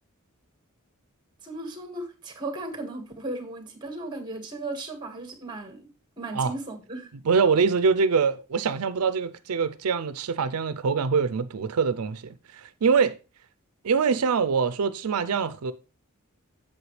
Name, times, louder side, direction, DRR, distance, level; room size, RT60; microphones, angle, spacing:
voice 1, 1.4-5.9 6.2-7.1, right 2 dB, 20° right, 1.8 m, -36 dB
voice 2, 7.3-13.2 13.8-15.7, right 5 dB, 90° right, 0.5 m, -24 dB
8.0 x 7.4 x 3.2 m
head